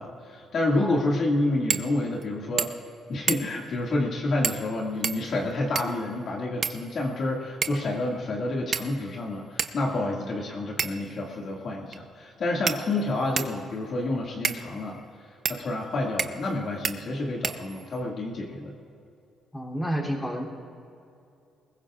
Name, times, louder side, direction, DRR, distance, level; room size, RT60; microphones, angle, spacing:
voice 1, 0.0-2.7 3.1-15.0 15.5-18.7, left 2 dB, 55° left, -2 dB, 2.1 m, -29 dB
sound 1, 1.7-1.9 2.2-2.3 2.6-2.9 3.3-3.7 4.4-4.7 5.0-6.0 6.6-7.2 7.6-7.9 8.7-9.1 9.6-9.7 10.8-11.1 11.9-12.0 12.7-13.6 14.4-14.6 15.4-15.6 16.2-16.5 16.8-17.0 17.4-18.0, right 6 dB, 55° right, 0.7 m, -30 dB
voice 2, 19.5-20.4, equal, 10° left, -3 dB, 3.1 m, -31 dB
21.5 x 20.5 x 2.5 m, 2.6 s
cardioid pair, 90°, 0 cm